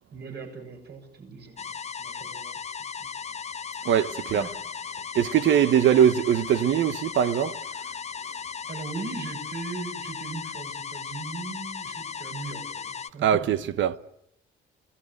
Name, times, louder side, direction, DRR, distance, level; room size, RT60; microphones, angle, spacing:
voice 1, 0.1-1.7 2.0-2.6 3.0-3.2 4.3-4.5 8.7-13.5, right 4 dB, 55° right, 7.0 m, -39 dB
sound 1, 1.6-13.1, left 6 dB, 35° left, 0.9 m, -36 dB
voice 2, 3.8-4.5 5.1-7.6 13.2-14.0, right 9 dB, 75° right, 1.0 m, -21 dB
25.0 x 18.0 x 8.2 m
cardioid pair, 90°, 20 cm